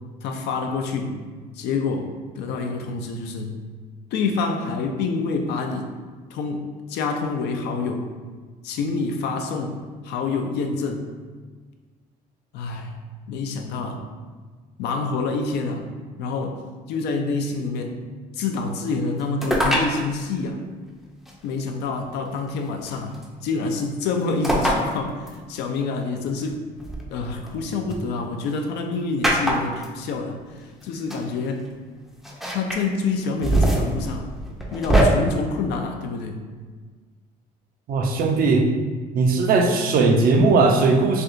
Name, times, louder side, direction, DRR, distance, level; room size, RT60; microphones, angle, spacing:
voice 1, 0.2-1.2 1.5-3.6 4.1-6.0 6.3-8.1 8.6-11.1 12.5-13.0 13.3-14.1 14.8-15.9 16.2-16.6 16.9-18.0 18.3-20.6 21.4-26.6 27.1-31.7 32.5-34.3 34.7-36.4, left 4 dB, 80° left, 4 dB, 0.4 m, -27 dB
sound 1, 19.4-19.9 21.3-21.4 22.9-23.2 24.4-24.8 25.3-25.4 26.8-27.9 29.2-29.9 30.8-30.9 31.1-31.2 32.2-32.8 33.2-35.0, right 1 dB, ahead, 0.5 m, -22 dB
voice 2, 37.9-38.7 39.1-41.2, right 3 dB, 60° right, 2 dB, 0.5 m, -18 dB
3.4 x 2.8 x 2.5 m, 1.4 s
cardioid pair, 110°, 17 cm